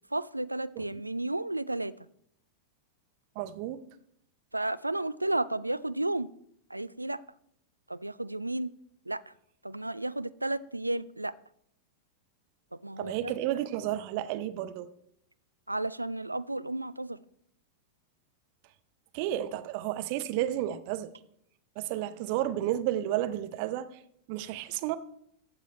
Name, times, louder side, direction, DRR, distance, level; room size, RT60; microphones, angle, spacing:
voice 1, 0.1-1.9 4.5-6.3 6.7-7.2 7.9-8.7 9.1-9.3 9.6-11.4 12.8-13.3 15.7-17.2, right 2 dB, 85° right, 0.3 m, -32 dB
voice 2, 3.4-3.8 13.0-14.9 19.1-21.1 21.8-24.0 24.3-25.0, right 13 dB, 45° right, 0.7 m, -32 dB
14.5 x 6.2 x 4.3 m
figure-of-eight pair, 90°, 0 cm